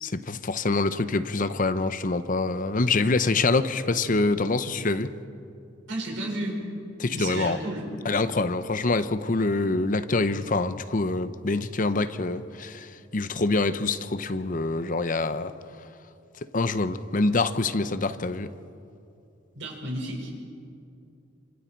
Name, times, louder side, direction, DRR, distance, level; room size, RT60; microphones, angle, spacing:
voice 1, 0.0-5.1 7.0-7.6 8.0-15.5 16.4-18.5, left 3 dB, 45° left, 0.8 m, -25 dB
voice 2, 5.9-6.6 7.1-7.9 19.5-20.3, right 1 dB, 80° right, 5.6 m, -32 dB
26.0 x 26.0 x 4.6 m
head